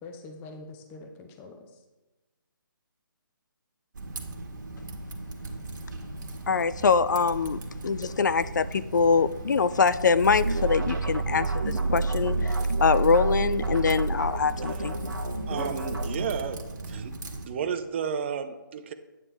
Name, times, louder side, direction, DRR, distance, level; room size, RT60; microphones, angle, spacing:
voice 1, 0.0-1.8 15.5-15.8, left 3 dB, 15° left, 5 dB, 0.7 m, -42 dB
Typing, 3.9-17.5, right 2 dB, 55° right, 1.6 m, -38 dB
voice 2, 6.5-12.4 12.8-14.9, left 5 dB, 55° left, 15 dB, 0.4 m, -24 dB
sound 1, 10.2-16.3, right 3 dB, 85° right, 1.3 m, -29 dB
voice 3, 15.5-17.1 17.4-18.9, right 7 dB, 30° right, 8 dB, 0.7 m, -32 dB
9.2 x 8.4 x 3.4 m, 1.1 s
figure-of-eight pair, 145°, 11 cm